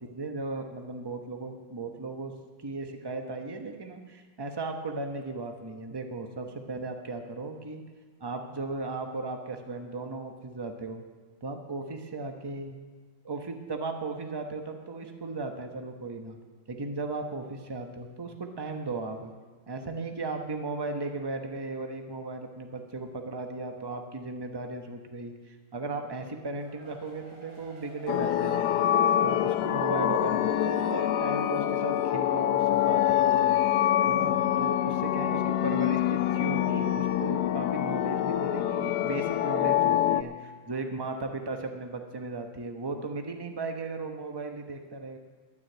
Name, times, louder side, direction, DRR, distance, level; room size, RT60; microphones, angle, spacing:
voice 1, 0.0-2.3 2.6-7.8 8.2-11.0 11.4-12.7 13.2-16.4 16.7-19.3 19.7-28.8 29.2-33.6 34.1-45.2, right 3 dB, 30° right, 5 dB, 0.4 m, -36 dB
sound 1, 26.2-29.8 30.1-30.2 30.5-30.6, right 2 dB, 85° right, 3.5 m, -53 dB
sound 2, 28.1-40.2, left 11 dB, 70° left, 1.0 m, -25 dB
12.0 x 9.7 x 7.8 m, 1.4 s
omnidirectional pair, 2.2 m